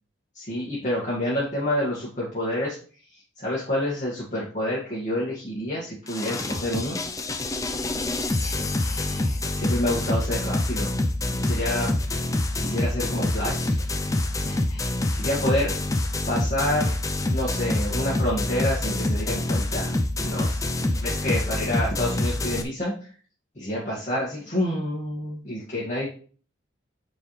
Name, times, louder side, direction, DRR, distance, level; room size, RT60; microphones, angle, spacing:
voice 1, 0.3-2.8 3.1-7.0 8.4-10.9 11.3-11.9 12.6-13.8 14.4-15.7 16.3-17.0 17.3-19.9 20.2-23.1 23.6-26.1, left 1 dB, 40° left, -6 dB, 2.1 m, -28 dB
sound 1, 6.1-22.6, left 1 dB, 15° left, 0.5 m, -26 dB
9.1 x 4.7 x 3.3 m, 0.41 s
head